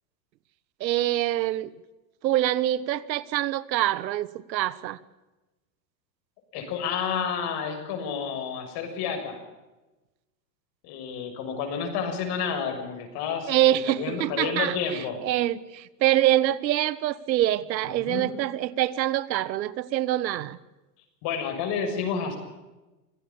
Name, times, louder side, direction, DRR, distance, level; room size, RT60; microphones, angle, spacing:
voice 1, 0.8-1.7 2.2-5.0 13.5-20.6, right 13 dB, 85° right, 18 dB, 1.3 m, -25 dB
voice 2, 6.5-9.4 10.8-15.2 17.9-18.3 21.2-22.4, left 6 dB, 50° left, 5 dB, 6.7 m, -30 dB
25.5 x 16.5 x 7.2 m, 1.1 s
supercardioid pair, 125°, 50 cm